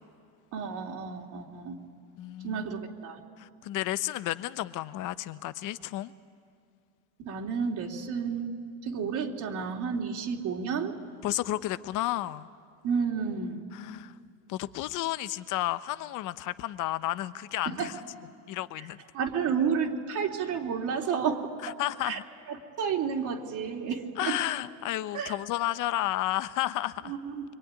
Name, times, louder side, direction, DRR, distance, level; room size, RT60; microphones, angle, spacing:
voice 1, 0.5-1.8 2.4-3.2 7.2-8.5 8.8-10.9 12.8-13.6 17.7-17.9 19.1-21.7 22.0-22.2 22.5-24.4 25.1-25.3 27.0-27.4, right 6 dB, 45° right, 0 dB, 3.1 m, -31 dB
voice 2, 2.2-2.6 3.4-6.1 11.2-12.5 13.7-14.1 14.5-18.0 18.5-19.0 21.6-22.2 24.2-27.2, left 15 dB, 50° left, 14 dB, 1.0 m, -32 dB
25.5 x 23.5 x 9.7 m, 2.3 s
supercardioid pair, 125°, 41 cm